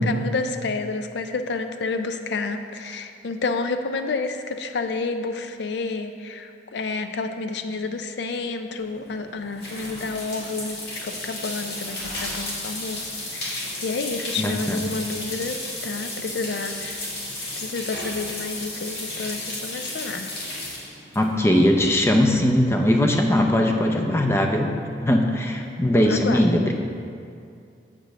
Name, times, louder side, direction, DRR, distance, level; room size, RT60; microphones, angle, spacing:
voice 1, 0.0-13.0 13.3-17.1 17.6-20.3 26.0-26.7, left 3 dB, 80° left, 8 dB, 0.5 m, -30 dB
sound 1, 8.8-22.0, left 1 dB, 65° left, 1.9 m, -33 dB
voice 2, 14.4-14.9 21.2-24.7 25.0-26.7, left 1 dB, 15° left, 3 dB, 0.5 m, -20 dB
7.5 x 5.0 x 6.6 m, 2.4 s
head